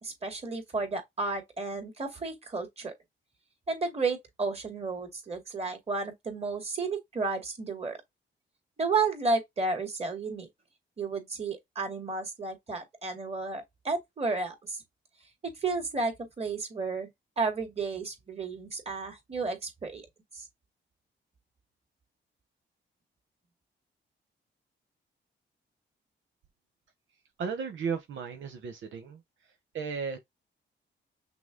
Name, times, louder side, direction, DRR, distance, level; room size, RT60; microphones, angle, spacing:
voice 1, 0.0-2.9 3.7-8.0 8.8-10.5 11.0-14.8 15.6-17.1 17.4-20.1 20.3-20.4, right 3 dB, 30° right, 2.3 m, -32 dB
voice 2, 27.4-29.2 29.7-30.2, right 6 dB, 75° right, 1.0 m, -34 dB
6.0 x 2.1 x 3.7 m
wide cardioid pair, 135°, 20 cm